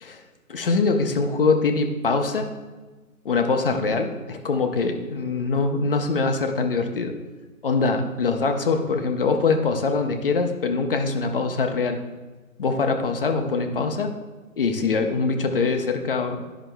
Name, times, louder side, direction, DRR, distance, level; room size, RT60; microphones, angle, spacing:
voice 1, 0.5-2.5 3.2-7.1 7.6-12.0 12.6-14.1 14.6-16.4, left 4 dB, 40° left, 5 dB, 0.7 m, -23 dB
11.0 x 5.8 x 2.2 m, 1.3 s
hypercardioid pair, 155°, 42 cm